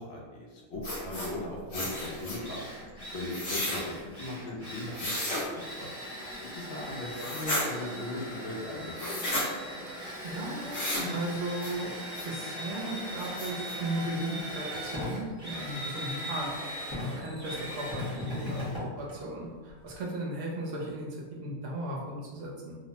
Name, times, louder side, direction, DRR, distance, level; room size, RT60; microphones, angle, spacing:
voice 1, 0.0-2.7 3.1-5.9 6.5-9.1, left 2 dB, 65° left, -2 dB, 0.6 m, -39 dB
sound 1, 0.8-1.3 1.7-2.4 3.3-3.8 4.9-5.5 7.1-7.6 9.0-9.5 10.7-11.1 11.6-11.7 12.1-12.2 12.7-12.8 13.2-13.7, left 1 dB, 50° left, 1.0 m, -33 dB
Drill, 1.4-1.5 1.9-20.0, left 1 dB, 25° left, 0.9 m, -39 dB
voice 2, 9.9-11.9 12.2-22.8, right 1 dB, 65° right, -3 dB, 0.9 m, -36 dB
3.0 x 2.0 x 2.8 m, 1.5 s
omnidirectional pair, 1.6 m